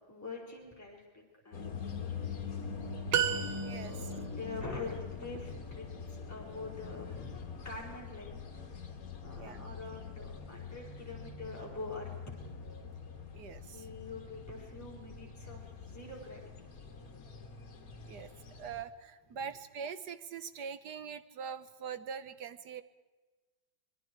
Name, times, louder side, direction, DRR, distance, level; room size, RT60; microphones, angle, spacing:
voice 1, 0.1-2.6 3.8-8.4 8.8-8.9 9.2-12.1 12.4-12.7 13.7-17.2 19.3-19.5, left 3 dB, 5° left, -4 dB, 4.9 m, -45 dB
sound 1, 1.5-18.8, left 5 dB, 45° left, 2.2 m, -44 dB
sound 2, 3.1-4.2, right 9 dB, 80° right, 1.8 m, -32 dB
voice 2, 3.6-3.9 9.4-9.6 13.3-13.9 18.0-18.3 18.6-22.8, right 7 dB, 60° right, 12 dB, 1.3 m, -43 dB
26.0 x 21.5 x 4.7 m, 1.3 s
omnidirectional pair, 2.2 m